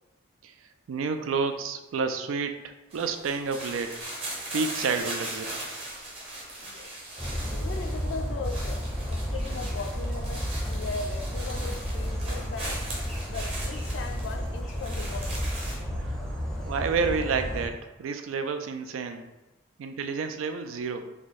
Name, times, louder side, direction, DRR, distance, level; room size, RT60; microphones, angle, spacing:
voice 1, 0.9-4.0 4.5-5.6 16.0-19.3 19.8-21.1, right 5 dB, 85° right, 7 dB, 0.3 m, -30 dB
sound 1, 2.9-15.8, right 1 dB, 30° right, 0.8 m, -39 dB
sound 2, 7.2-17.7, equal, ahead, 0.5 m, -32 dB
voice 2, 7.4-12.8 13.3-15.4, left 4 dB, 60° left, 6 dB, 0.3 m, -38 dB
2.9 x 2.3 x 4.1 m, 1.0 s
head